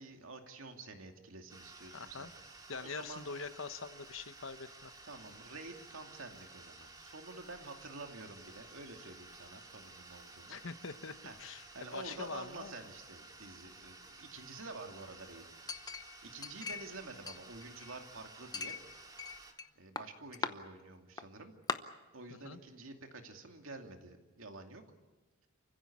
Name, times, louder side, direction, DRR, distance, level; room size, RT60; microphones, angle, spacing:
voice 1, 0.0-2.3 2.8-3.2 5.0-10.6 11.2-11.3 11.7-15.5 16.2-18.8 19.8-21.5 22.1-24.8, right 3 dB, 70° right, 4 dB, 2.6 m, -49 dB
sound 1, 1.5-19.5, right 3 dB, 20° right, 2.1 m, -54 dB
voice 2, 1.9-2.3 2.7-4.9 10.5-11.6 11.9-12.7 22.4-22.6, left 4 dB, 65° left, 11 dB, 1.1 m, -44 dB
Chink clink, 15.7-17.0 17.3-18.0 18.5-19.7 20.0-20.5 21.2-21.3 21.7-21.8, left 4 dB, 20° left, 0.8 m, -40 dB
28.5 x 15.5 x 8.7 m, 1.2 s
head